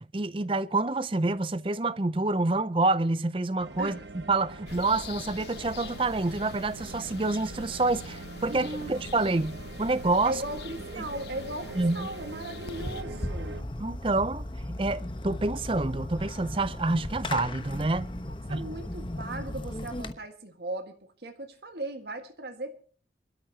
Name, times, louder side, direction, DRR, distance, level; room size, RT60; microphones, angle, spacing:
voice 1, 0.1-10.4 10.9-11.0 11.7-12.1 13.8-14.4 14.8-18.1 18.5-18.6, right 2 dB, 30° right, 0.6 m, -27 dB
sound 1, 3.6-13.6, right 3 dB, 85° right, 1.0 m, -43 dB
sound 2, 4.7-13.0, left 3 dB, 70° left, 1.0 m, -43 dB
voice 2, 8.5-8.9 9.2-9.5 10.2-13.7 18.5-22.7, right 1 dB, 70° right, 1.7 m, -38 dB
Fireworks, 12.7-20.1, left 1 dB, 30° left, 1.0 m, -36 dB
24.0 x 13.0 x 2.9 m
head